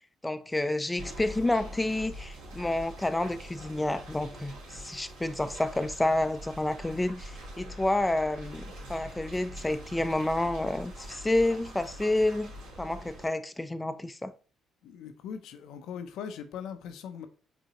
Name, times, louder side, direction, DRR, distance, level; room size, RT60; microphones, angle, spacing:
voice 1, 0.2-8.6 8.9-12.5 12.8-14.3, left 1 dB, 15° left, 0.5 m, -29 dB
sound 1, 1.0-13.3, equal, 90° right, 2.3 m, -44 dB
voice 2, 14.8-17.3, left 7 dB, 75° left, 0.6 m, -40 dB
5.0 x 3.6 x 2.9 m
supercardioid pair, 55°, 0 cm